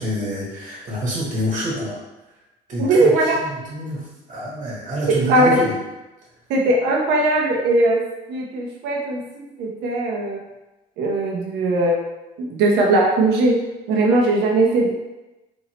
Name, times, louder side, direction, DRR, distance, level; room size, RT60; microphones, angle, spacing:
voice 1, 0.0-2.0 2.7-5.7, equal, 45° right, -5 dB, 1.3 m, -27 dB
voice 2, 2.8-3.4 5.3-5.6 6.5-8.0 8.3-10.4 11.0-12.0 12.4-13.5 13.9-14.9, right 2 dB, 90° right, -1 dB, 0.8 m, -19 dB
4.5 x 2.7 x 2.9 m, 1.0 s
cardioid pair, 110°, 17 cm